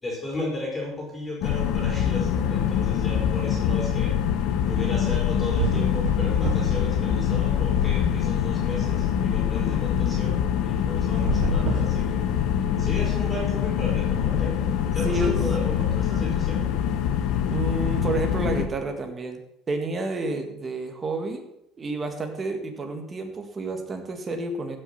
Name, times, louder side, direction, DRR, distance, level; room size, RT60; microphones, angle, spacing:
voice 1, 0.0-4.2 4.7-12.2 12.8-14.6 14.9-16.7, left 2 dB, 15° left, -2 dB, 4.1 m, -35 dB
sound 1, 1.4-18.7, left 9 dB, 70° left, 1.2 m, -24 dB
sound 2, 5.2-5.3 5.6-6.9 7.2-8.3 11.1-12.7, right 6 dB, 75° right, 3.2 m, -30 dB
voice 2, 15.0-15.4 17.5-19.4 19.7-21.4 21.8-24.8, right 2 dB, 25° right, 5 dB, 1.8 m, -29 dB
15.0 x 6.4 x 5.8 m, 0.83 s
cardioid pair, 140°, 0 cm